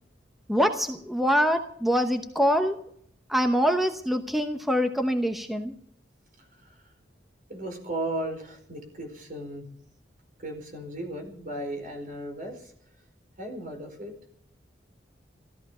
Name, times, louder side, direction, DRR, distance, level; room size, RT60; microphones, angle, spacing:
voice 1, 0.5-2.8 3.3-5.7, equal, ahead, 5 dB, 0.9 m, -24 dB
voice 2, 6.4-6.9 7.5-9.6 10.4-12.7 13.4-14.1, right 1 dB, 50° right, 4 dB, 4.6 m, -36 dB
15.0 x 14.0 x 5.6 m, 0.65 s
head